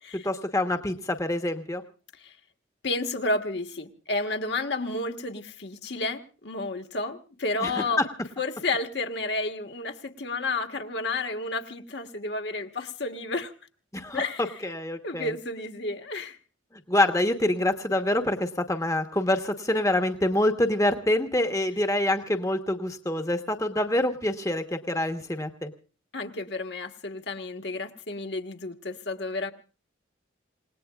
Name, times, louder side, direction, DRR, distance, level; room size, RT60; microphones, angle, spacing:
voice 1, 0.2-1.8 7.6-7.7 8.0-8.1 13.9-15.3 16.9-25.7, left 1 dB, 15° left, 7 dB, 1.1 m, -26 dB
voice 2, 2.8-8.0 8.4-13.5 14.1-14.6 15.0-16.4 26.1-29.5, left 2 dB, 60° left, 5 dB, 1.6 m, -31 dB
28.0 x 18.5 x 2.4 m, 0.37 s
head